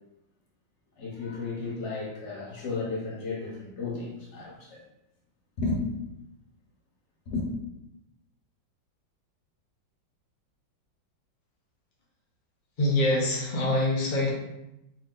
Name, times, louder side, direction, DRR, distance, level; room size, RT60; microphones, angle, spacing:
voice 1, 1.0-4.8 5.6-5.9 7.3-7.5, left 3 dB, 45° left, -3 dB, 1.0 m, -33 dB
voice 2, 12.8-14.3, left 1 dB, 85° left, -3 dB, 0.4 m, -25 dB
3.4 x 2.7 x 3.8 m, 0.89 s
omnidirectional pair, 2.0 m